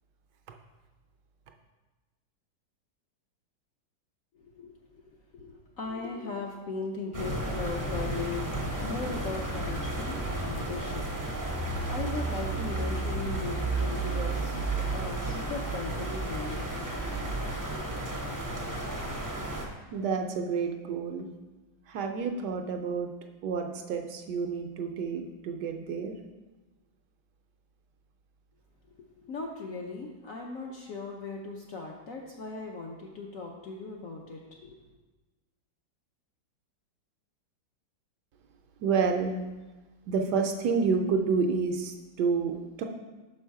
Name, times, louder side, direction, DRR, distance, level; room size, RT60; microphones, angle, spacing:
voice 1, 4.5-5.0 5.3-8.5 8.8-11.1 11.9-16.6 17.1-17.2 29.2-34.8, left 4 dB, 65° left, 0 dB, 0.8 m, -38 dB
sound 1, 7.1-19.7, right 2 dB, 20° right, 0.4 m, -32 dB
voice 2, 19.9-21.3 21.9-23.1 23.4-26.1 38.8-39.4 40.1-42.8, right 5 dB, 75° right, 4 dB, 1.1 m, -29 dB
6.1 x 5.5 x 4.6 m, 1.2 s
omnidirectional pair, 2.0 m